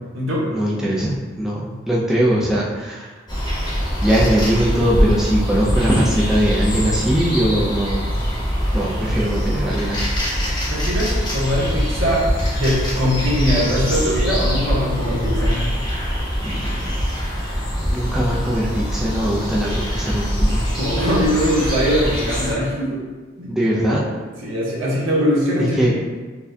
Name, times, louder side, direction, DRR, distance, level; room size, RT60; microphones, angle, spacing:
voice 1, 0.5-3.1 4.0-8.3 8.7-10.1 16.4-16.8 17.9-20.6 23.5-24.0 25.8-25.9, equal, 5° right, -6 dB, 0.4 m, -21 dB
sound 1, 3.3-22.5, equal, 20° left, 0.9 m, -23 dB
voice 2, 10.7-12.2 12.5-15.6 20.8-23.0 23.4-23.5 24.4-25.9, equal, 75° right, -5 dB, 1.1 m, -21 dB
4.4 x 2.2 x 2.6 m, 1.4 s
head